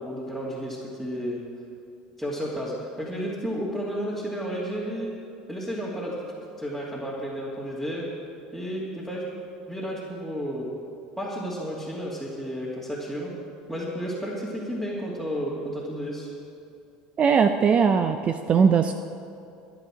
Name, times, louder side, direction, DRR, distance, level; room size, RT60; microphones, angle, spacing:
voice 1, 0.0-1.4 2.2-5.1 5.5-6.1 6.6-8.1 8.5-9.2 9.7-10.7 11.2-13.3 13.7-16.3, equal, 10° right, -7 dB, 2.8 m, -32 dB
voice 2, 17.2-18.9, right 6 dB, 40° right, 8 dB, 0.6 m, -20 dB
13.5 x 10.0 x 6.4 m, 2.6 s
hypercardioid pair, 85°, 3 cm